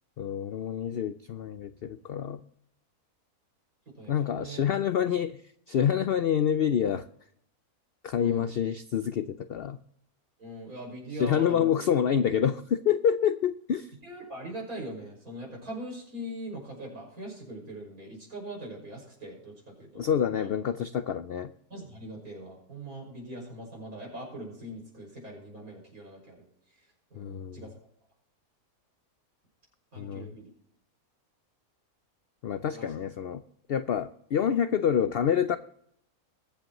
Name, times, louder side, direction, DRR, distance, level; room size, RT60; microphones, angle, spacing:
voice 1, 0.2-2.4 4.1-5.4 5.7-7.1 8.0-9.8 11.2-13.9 20.0-21.5 27.2-27.6 30.0-30.3 32.4-33.4 33.7-35.6, left 8 dB, 75° left, 12 dB, 0.5 m, -27 dB
voice 2, 4.0-4.6 8.2-8.5 10.4-11.7 14.0-20.0 20.3-20.5 21.7-26.4 27.1-27.7 29.9-30.5 32.7-32.9, right 1 dB, 70° right, -2 dB, 6.5 m, -41 dB
22.5 x 7.8 x 3.0 m, 0.69 s
omnidirectional pair, 1.6 m